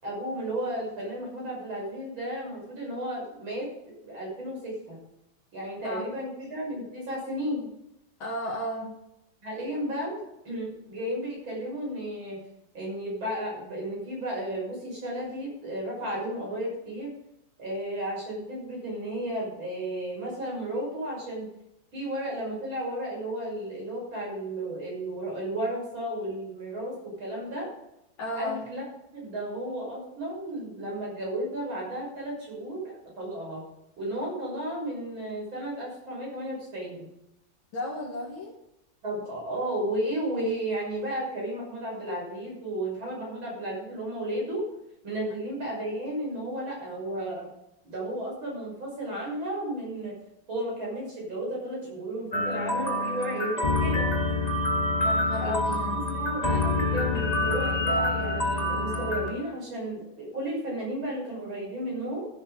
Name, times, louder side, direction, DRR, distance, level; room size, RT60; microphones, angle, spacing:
voice 1, 0.0-5.0 5.5-7.7 9.4-12.4 12.7-17.1 17.6-21.5 21.9-27.7 28.4-28.8 29.1-33.6 34.0-37.1 39.0-44.6 45.0-47.5 47.8-50.2 50.5-54.1 55.4-55.5 55.9-62.3, right 1 dB, 85° right, -3 dB, 6.9 m, -33 dB
voice 2, 8.2-8.9 28.2-28.7 37.7-38.5 55.0-56.0, left 1 dB, 85° left, -4 dB, 2.8 m, -33 dB
sound 1, 52.3-59.3, left 2 dB, 20° left, 1.9 m, -26 dB
15.0 x 9.2 x 4.9 m, 0.86 s
omnidirectional pair, 2.1 m